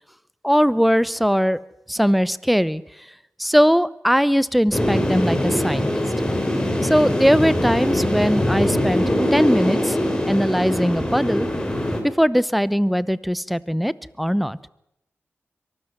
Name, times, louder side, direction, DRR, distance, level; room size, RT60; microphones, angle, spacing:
voice 1, 0.4-1.6 1.9-2.8 3.4-6.0 6.8-10.0 10.3-11.5 12.2-14.6, equal, ahead, 19 dB, 0.8 m, -20 dB
sound 1, 4.7-12.0, left 1 dB, 15° left, 4.2 m, -22 dB
23.5 x 13.5 x 9.4 m, 0.83 s
cardioid pair, 70°, 5 cm